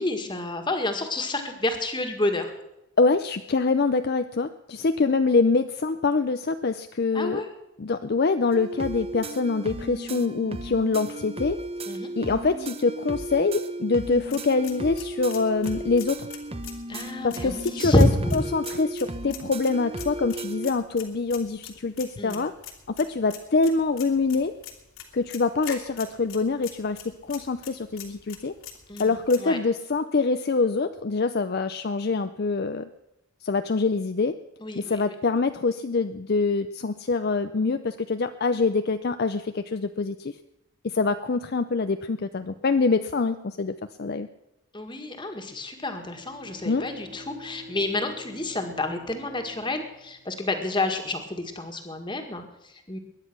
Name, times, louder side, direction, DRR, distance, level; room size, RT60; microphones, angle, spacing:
voice 1, 0.0-2.5 7.1-7.5 11.9-12.1 16.9-18.3 22.2-22.4 28.9-29.1 29.4-29.6 34.6-35.0 44.7-53.0, left 1 dB, 20° left, 5 dB, 1.8 m, -28 dB
voice 2, 3.0-7.4 7.8-11.6 12.2-16.3 17.2-18.1 18.3-22.5 22.9-24.5 25.1-27.0 27.3-28.5 29.0-32.9 33.4-34.3 34.8-40.3 40.8-43.7 44.0-44.3 46.7-46.9, left 4 dB, 45° left, 9 dB, 0.5 m, -25 dB
sound 1, 8.5-20.7, right 1 dB, 25° right, 0.9 m, -35 dB
sound 2, 14.1-29.4, left 8 dB, 75° left, 2.8 m, -44 dB
Bowed string instrument, 45.7-51.2, left 1 dB, 85° right, 7.7 m, -47 dB
21.5 x 10.0 x 6.1 m, 0.91 s
head